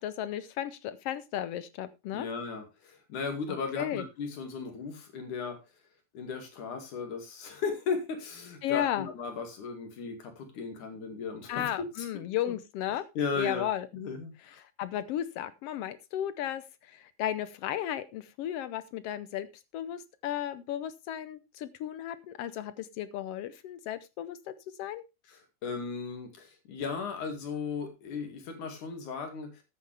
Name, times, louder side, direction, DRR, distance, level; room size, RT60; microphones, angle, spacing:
voice 1, 0.0-2.3 3.8-4.0 8.6-9.1 11.5-13.0 13.4-13.9 14.8-16.6 17.2-19.5 19.7-24.5 24.8-25.0, left 11 dB, 85° left, 14 dB, 1.3 m, -34 dB
voice 2, 2.1-5.6 6.1-12.1 12.5-12.6 13.2-13.7 13.9-14.3 25.3-29.5, left 5 dB, 70° left, 5 dB, 3.7 m, -36 dB
14.0 x 9.5 x 3.4 m, 0.26 s
omnidirectional pair, 3.7 m